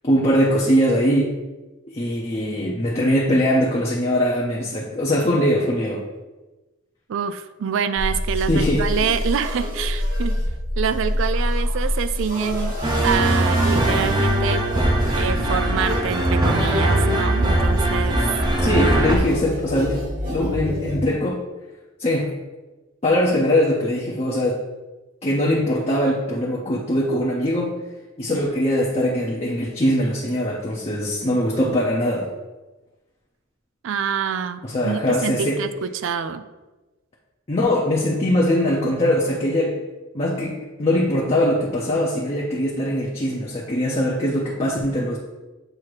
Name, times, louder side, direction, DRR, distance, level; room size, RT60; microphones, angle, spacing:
voice 1, 0.0-1.3 1.9-6.0 8.5-8.9 18.6-20.0 20.3-21.4 22.0-22.4 23.0-24.6 25.2-27.7 28.2-32.3 34.6-35.6 37.5-39.8 40.1-45.2, left 1 dB, 30° left, -4 dB, 0.7 m, -21 dB
voice 2, 7.1-10.4 10.8-12.8 13.0-14.7 15.1-18.2 33.8-36.5, right 7 dB, 65° right, 12 dB, 0.4 m, -26 dB
sound 1, 8.0-21.0, equal, 45° right, 1.3 m, -26 dB
sound 2, 12.8-19.2, right 1 dB, 20° right, 0.6 m, -21 dB
7.6 x 2.8 x 4.8 m, 1.1 s
head